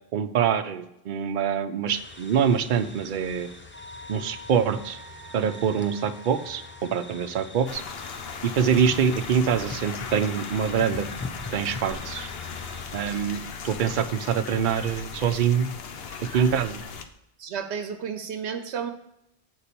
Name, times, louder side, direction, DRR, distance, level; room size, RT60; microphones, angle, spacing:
voice 1, 0.1-3.5 4.1-5.0 5.3-7.8 8.4-11.1 11.5-12.3 12.9-15.7 16.3-16.8, right 7 dB, 55° right, 9 dB, 0.7 m, -25 dB
sound 1, 1.9-13.1, left 3 dB, 15° left, 0.5 m, -42 dB
Wind instrument woodwind instrument, 3.7-7.2, equal, 30° left, 1.3 m, -46 dB
sound 2, 7.7-17.0, left 5 dB, 65° left, 0.9 m, -38 dB
voice 2, 17.4-18.9, right 7 dB, 85° right, 8 dB, 1.0 m, -32 dB
7.6 x 4.3 x 6.7 m, 0.81 s
omnidirectional pair, 1.1 m